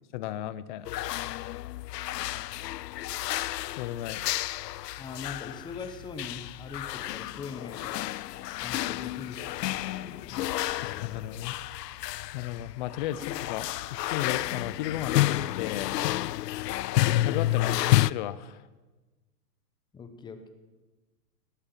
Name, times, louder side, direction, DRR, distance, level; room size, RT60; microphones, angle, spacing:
voice 1, 0.1-0.9 3.8-4.4 10.8-15.9 16.9-18.7, left 12 dB, 30° left, 16 dB, 0.6 m, -35 dB
sound 1, 0.8-18.1, left 15 dB, 80° left, 0.6 m, -30 dB
voice 2, 5.0-8.0 8.6-10.4 17.5-17.8 19.9-20.5, left 5 dB, 10° left, 8 dB, 1.1 m, -42 dB
sound 2, 6.2-13.3, right 5 dB, 25° right, 1.6 m, -61 dB
19.0 x 13.0 x 5.8 m, 1.2 s
hypercardioid pair, 150°, 48 cm